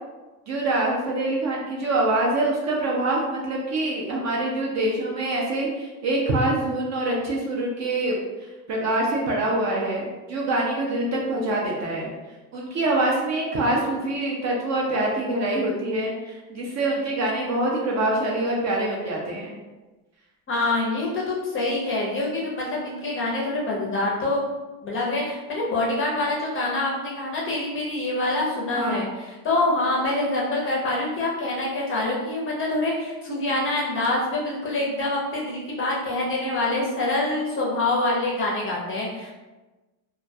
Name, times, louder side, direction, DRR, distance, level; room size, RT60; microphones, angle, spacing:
voice 1, 0.5-12.1 12.5-19.5 28.8-29.0, right 2 dB, 40° right, -2 dB, 0.4 m, -25 dB
voice 2, 20.5-24.4 24.8-39.3, left 2 dB, 30° left, -4 dB, 0.5 m, -25 dB
2.3 x 2.2 x 2.6 m, 1.2 s
cardioid pair, 135°, 45 cm